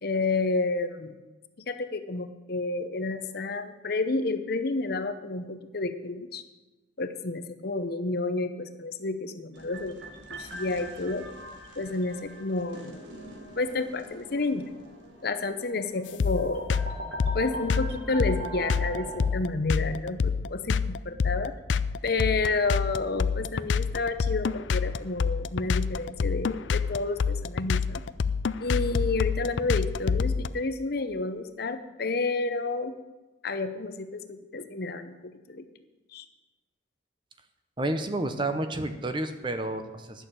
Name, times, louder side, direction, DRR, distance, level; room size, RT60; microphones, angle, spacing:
voice 1, 0.0-1.2 1.6-6.4 7.0-10.0 10.3-11.3 11.8-13.0 13.6-14.7 15.2-16.7 17.3-21.5 22.0-28.0 28.6-33.0 33.4-35.7 36.1-36.3, left 3 dB, 55° left, 9 dB, 0.8 m, -30 dB
sound 1, 9.5-19.3, right 1 dB, 70° right, 2.0 m, -41 dB
sound 2, 16.2-30.5, left 5 dB, 70° left, 0.4 m, -26 dB
voice 2, 37.8-40.3, right 2 dB, 25° right, 8 dB, 0.8 m, -30 dB
11.0 x 6.6 x 8.9 m, 1.2 s
head